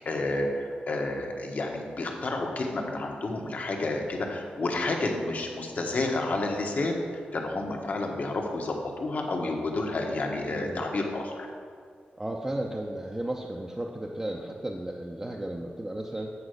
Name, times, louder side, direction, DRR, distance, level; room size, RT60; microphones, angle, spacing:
voice 1, 0.0-7.0 7.3-11.5, left 2 dB, 55° left, 1 dB, 1.1 m, -30 dB
voice 2, 10.5-10.9 12.2-16.3, right 1 dB, 15° right, -1 dB, 0.5 m, -34 dB
8.3 x 4.4 x 6.4 m, 2.1 s
wide cardioid pair, 125°, 3 cm